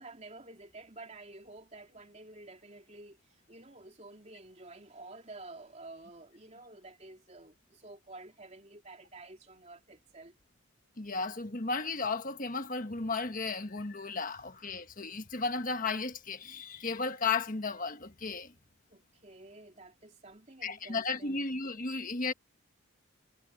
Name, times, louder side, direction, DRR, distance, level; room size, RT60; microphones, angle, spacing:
voice 1, 0.0-10.4 18.9-21.4, right 2 dB, 30° right, 3.3 m, -51 dB
voice 2, 11.0-18.5 20.6-22.3, left 4 dB, 40° left, 1.5 m, -34 dB
head